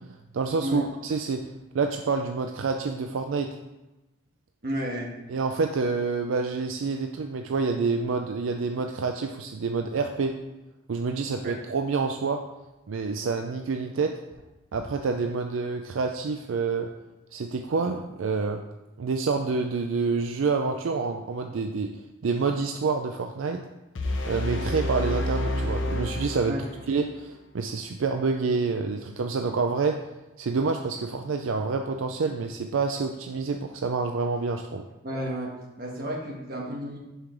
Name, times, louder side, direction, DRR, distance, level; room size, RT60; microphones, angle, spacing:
voice 1, 0.0-1.4 1.7-3.5 5.3-10.3 10.9-12.4 12.9-14.1 14.7-16.9 17.3-18.6 19.0-21.9 22.2-23.6 24.3-26.5 26.9-30.0 30.4-34.8, right 4 dB, 80° right, 4 dB, 0.4 m, -27 dB
voice 2, 4.6-5.1 11.4-11.5 26.5-26.6 35.0-37.0, right 1 dB, 50° right, -1 dB, 1.4 m, -32 dB
sound 1, 23.9-27.0, left 1 dB, 65° left, 0.8 m, -29 dB
5.6 x 4.9 x 5.9 m, 1.0 s
head